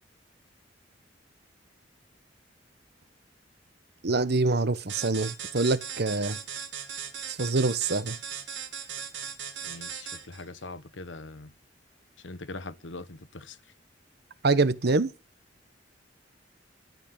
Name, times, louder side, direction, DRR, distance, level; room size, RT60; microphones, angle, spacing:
voice 1, 4.0-6.4 7.3-8.2 14.4-15.1, right 3 dB, 60° right, 1.0 m, -25 dB
sound 1, 4.9-10.4, right 8 dB, 80° right, 2.3 m, -38 dB
voice 2, 9.6-11.5 12.2-13.6, left 3 dB, 80° left, 1.2 m, -42 dB
13.5 x 8.5 x 8.8 m
head